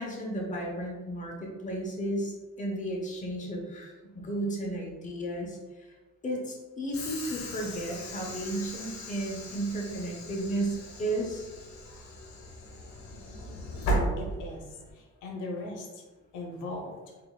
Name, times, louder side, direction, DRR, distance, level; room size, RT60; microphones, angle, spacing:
voice 1, 0.0-5.9 6.2-11.5, right 1 dB, 25° left, -1 dB, 0.9 m, -33 dB
Train / Sliding door, 6.9-14.9, right 1 dB, 60° left, 1.0 m, -36 dB
voice 2, 14.1-16.0 16.3-16.9, left 2 dB, 80° left, 0 dB, 0.8 m, -39 dB
3.9 x 3.4 x 2.3 m, 1.2 s
cardioid pair, 90°, 30 cm